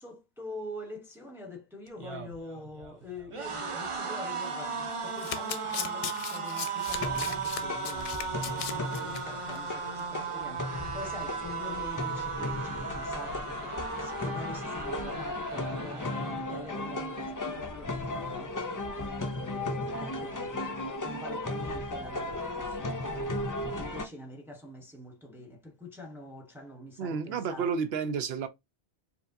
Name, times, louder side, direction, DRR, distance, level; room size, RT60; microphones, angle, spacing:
voice 1, 0.0-27.8, left 2 dB, ahead, 0.8 m, -45 dB
sound 1, 1.9-17.1 17.4-17.6 17.9-18.7, right 5 dB, 35° right, 0.6 m, -37 dB
Domestic sounds home sounds, 4.9-9.2 9.5-9.7 10.0-10.1, left 9 dB, 70° left, 0.8 m, -37 dB
sound 2, 6.9-24.1, left 2 dB, 30° left, 0.4 m, -36 dB
voice 2, 27.0-28.5, right 6 dB, 65° right, 0.9 m, -31 dB
4.7 x 2.9 x 2.6 m
omnidirectional pair, 1.1 m